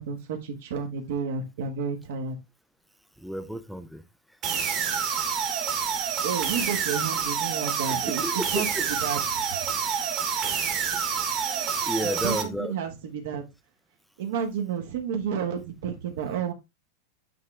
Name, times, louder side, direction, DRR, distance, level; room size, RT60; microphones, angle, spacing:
voice 1, 0.0-2.4 6.2-8.7 9.0-9.4 12.0-13.4 14.2-16.5, right 7 dB, 65° right, 1.3 m, -31 dB
voice 2, 3.2-4.0 6.6-6.8 8.2-8.6 11.4-12.7, equal, ahead, 0.4 m, -32 dB
sound 1, 4.4-12.4, right 7 dB, 25° right, 1.2 m, -28 dB
8.4 x 3.3 x 3.6 m
supercardioid pair, 180°, 0 cm